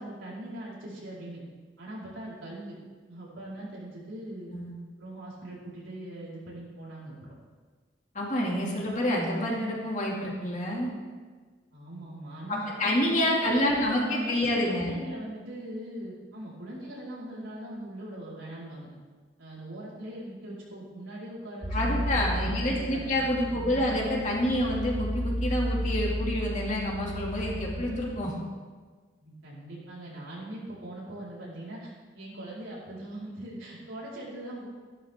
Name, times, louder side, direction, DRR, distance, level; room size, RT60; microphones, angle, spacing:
voice 1, 0.0-1.4 1.8-2.8 3.1-4.5 5.0-7.3 11.7-13.0 13.3-18.9 19.4-23.9 29.2-34.7, right 1 dB, 85° right, -6 dB, 4.7 m, -41 dB
voice 2, 8.1-10.9 12.5-14.9 21.7-28.3, left 1 dB, 40° left, -3 dB, 2.6 m, -28 dB
sound 1, 21.6-28.2, equal, 35° right, 3.7 m, -33 dB
14.5 x 12.0 x 3.7 m, 1.5 s
head